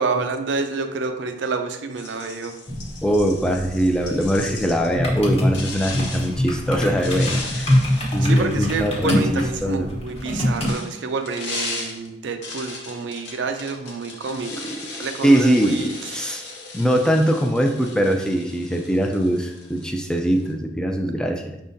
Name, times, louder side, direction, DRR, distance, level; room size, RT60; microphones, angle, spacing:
voice 1, 0.0-2.5 8.2-14.7 15.0-16.2, right 4 dB, 90° right, 6 dB, 0.5 m, -28 dB
sound 1, 2.0-5.0 5.5-6.3 6.9-9.1 10.1-20.5, left 3 dB, 70° left, 0.8 m, -37 dB
sound 2, 2.7-10.7, left 1 dB, 35° left, 1.0 m, -24 dB
voice 2, 3.0-7.7 8.1-9.9 14.6-14.8 15.2-16.4 16.7-21.6, equal, 5° left, 3 dB, 0.4 m, -22 dB
5.3 x 3.6 x 2.7 m, 0.86 s
head